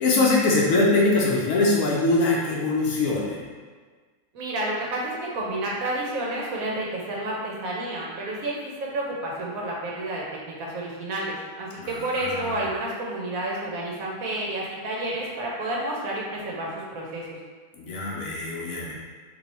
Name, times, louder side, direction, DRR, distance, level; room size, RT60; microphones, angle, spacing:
voice 1, 0.0-3.4 11.8-11.9 12.1-12.6 17.8-18.9, left 2 dB, 65° left, -4 dB, 1.0 m, -22 dB
voice 2, 4.3-17.2, right 1 dB, 65° right, -3 dB, 1.1 m, -30 dB
3.1 x 2.7 x 4.1 m, 1.5 s
omnidirectional pair, 1.7 m